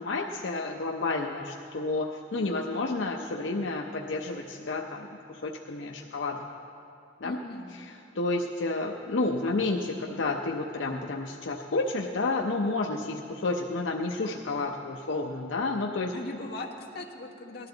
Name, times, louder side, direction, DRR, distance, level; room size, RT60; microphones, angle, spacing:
voice 1, 0.0-6.4 7.2-7.4 7.9-16.1, left 3 dB, 80° left, 1 dB, 0.7 m, -30 dB
voice 2, 7.2-7.8 16.1-17.7, left 2 dB, 55° left, 0 dB, 1.3 m, -39 dB
19.0 x 12.0 x 3.9 m, 2.7 s
head